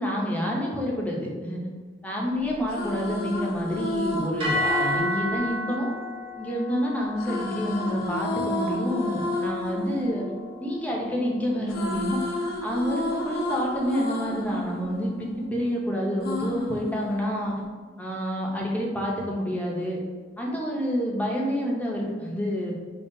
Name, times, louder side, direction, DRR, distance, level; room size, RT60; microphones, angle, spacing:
voice 1, 0.0-1.6 2.0-5.9 6.4-10.2 10.6-12.2 12.6-17.6 18.0-20.0 20.4-22.7, equal, 10° left, -3 dB, 0.6 m, -28 dB
sound 1, 2.5-6.6 7.2-11.2 11.5-15.7 16.2-17.7, left 2 dB, 55° left, 0.4 m, -32 dB
sound 2, 4.4-12.7, left 1 dB, 30° right, 1.0 m, -34 dB
5.1 x 2.3 x 2.6 m, 1.5 s
head